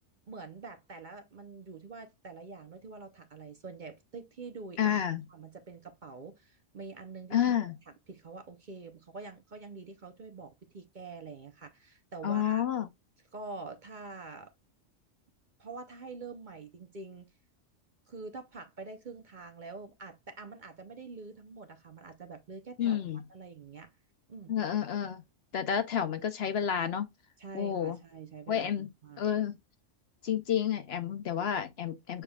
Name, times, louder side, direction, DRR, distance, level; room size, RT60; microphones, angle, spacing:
voice 1, 0.3-5.0 5.3-7.7 8.1-12.6 13.3-14.5 15.6-17.3 18.1-23.0 23.3-23.9 24.3-24.6 27.4-28.7 29.0-29.3, right 4 dB, 45° right, 0.7 m, -46 dB
voice 2, 4.8-5.2 7.3-7.8 12.2-12.9 22.8-23.2 24.5-25.2 25.5-27.1 27.5-28.0 28.5-28.9 29.2-29.6 30.2-32.2, left 9 dB, 60° left, 0.8 m, -30 dB
6.8 x 3.4 x 2.2 m
omnidirectional pair, 1.3 m